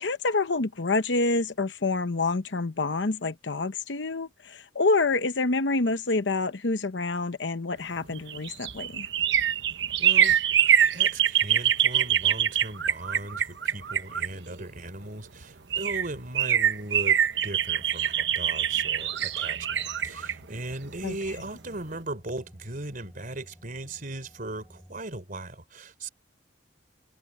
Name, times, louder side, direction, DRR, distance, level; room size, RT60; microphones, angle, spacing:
voice 1, 0.0-9.1 21.0-21.2, left 3 dB, 70° left, 0.9 m, -27 dB
sound 1, 8.0-14.8 15.4-15.5 15.7-21.5 21.8-21.9, right 10 dB, 70° right, 1.1 m, -25 dB
voice 2, 10.0-10.4 10.8-26.1, right 2 dB, 50° right, 4.0 m, -38 dB
sound 2, 17.3-25.0, equal, ahead, 8.0 m, -54 dB
head